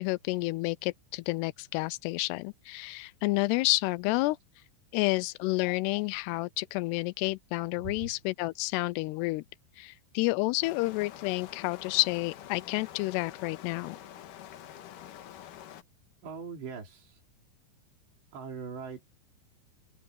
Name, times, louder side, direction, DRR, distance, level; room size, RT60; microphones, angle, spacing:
voice 1, 0.0-4.4 4.9-9.4 9.8-14.0, left 22 dB, 85° left, 2.6 m, -30 dB
voice 2, 7.8-8.2 16.2-17.2 18.3-19.1, right 5 dB, 90° right, 6.2 m, -41 dB
sound 1, 10.6-15.8, left 11 dB, 65° left, 2.5 m, -47 dB
omnidirectional pair, 4.8 m